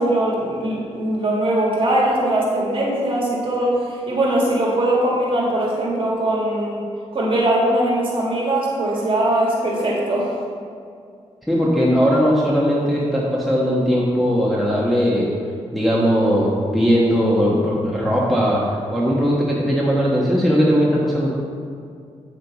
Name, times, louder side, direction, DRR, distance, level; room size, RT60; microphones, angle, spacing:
voice 1, 0.0-6.8 7.1-10.3, right 1 dB, 45° right, -4 dB, 1.9 m, -21 dB
voice 2, 11.5-15.3 15.7-18.6 18.9-21.3, equal, ahead, -6 dB, 1.2 m, -18 dB
8.6 x 6.5 x 4.0 m, 2.3 s
cardioid pair, 95°, 12 cm